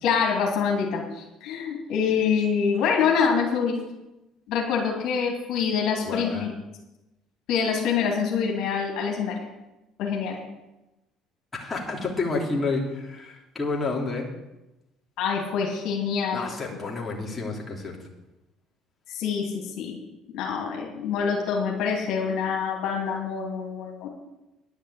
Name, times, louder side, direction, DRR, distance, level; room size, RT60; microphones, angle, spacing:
voice 1, 0.0-3.8 4.5-6.5 7.5-9.4 10.0-10.4 15.2-16.5 19.1-20.0 20.3-24.1, left 6 dB, 70° left, 0 dB, 2.6 m, -25 dB
voice 2, 6.0-6.4 11.6-14.3 16.3-18.0, left 3 dB, 25° left, -2 dB, 3.1 m, -29 dB
10.5 x 6.5 x 8.2 m, 0.98 s
supercardioid pair, 85°, 0 cm